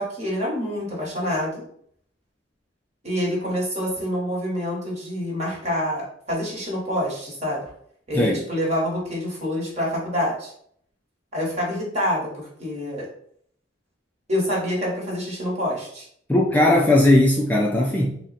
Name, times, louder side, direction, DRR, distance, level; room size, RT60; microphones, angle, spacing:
voice 1, 0.0-1.6 3.0-7.6 8.1-10.5 11.3-13.1 14.3-16.0, equal, 35° right, -3 dB, 1.3 m, -27 dB
voice 2, 16.3-18.2, left 1 dB, 10° left, -2 dB, 0.3 m, -18 dB
3.8 x 2.1 x 4.0 m, 0.66 s
head